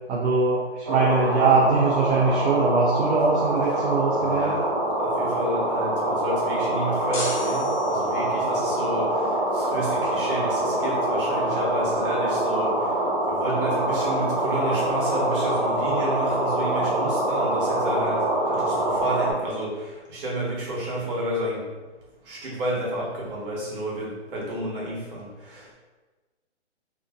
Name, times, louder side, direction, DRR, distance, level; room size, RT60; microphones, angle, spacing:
voice 1, 0.1-4.6, right 3 dB, 65° right, -3 dB, 0.6 m, -22 dB
sound 1, 0.8-19.3, right 1 dB, 20° right, 0.5 m, -25 dB
voice 2, 4.2-4.6 5.2-9.2 9.5-12.7 13.4-21.6 22.3-25.7, right 1 dB, 50° right, -5 dB, 1.2 m, -31 dB
sound 2, 7.1-8.5, left 2 dB, 45° left, 0.9 m, -34 dB
2.9 x 2.5 x 2.3 m, 1.3 s
hypercardioid pair, 145°, 35 cm